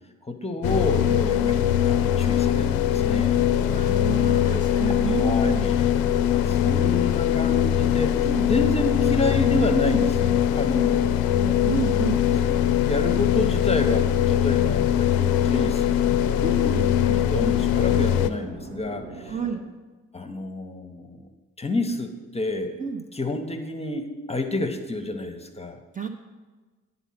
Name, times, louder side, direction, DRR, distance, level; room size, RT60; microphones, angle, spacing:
voice 1, 0.2-1.6 1.8-3.4 4.3-5.9 6.3-8.1 8.5-11.2 12.3-12.4 12.9-19.3 20.1-21.3 21.6-22.8 23.1-25.8, left 1 dB, 15° left, 6 dB, 0.9 m, -29 dB
sound 1, 0.6-18.3, left 10 dB, 65° left, 0.5 m, -22 dB
voice 2, 1.1-1.5 3.7-5.7 8.3-8.5 11.3-12.2 16.4-16.9 19.3-19.6 22.8-23.1 25.9-26.1, right 5 dB, 20° right, 3 dB, 0.6 m, -30 dB
sound 2, 1.1-19.5, right 3 dB, 65° right, 1.0 m, -41 dB
9.2 x 4.1 x 5.7 m, 1.3 s
hypercardioid pair, 45°, 39 cm